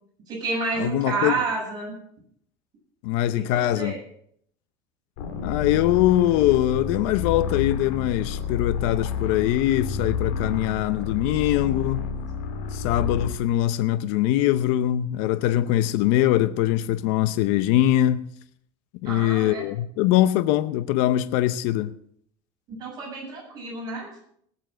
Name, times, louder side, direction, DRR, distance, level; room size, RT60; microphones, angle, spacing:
voice 1, 0.3-2.0 3.5-4.0 19.1-19.6 22.7-24.2, right 3 dB, 40° right, 7.3 m, -30 dB
voice 2, 0.8-1.4 3.0-4.0 5.4-12.1 12.7-18.3 19.0-21.9, left 13 dB, 70° left, 0.7 m, -22 dB
sound 1, 5.2-13.4, left 6 dB, 90° left, 2.9 m, -30 dB
18.5 x 7.2 x 6.2 m
cardioid pair, 140°, 11 cm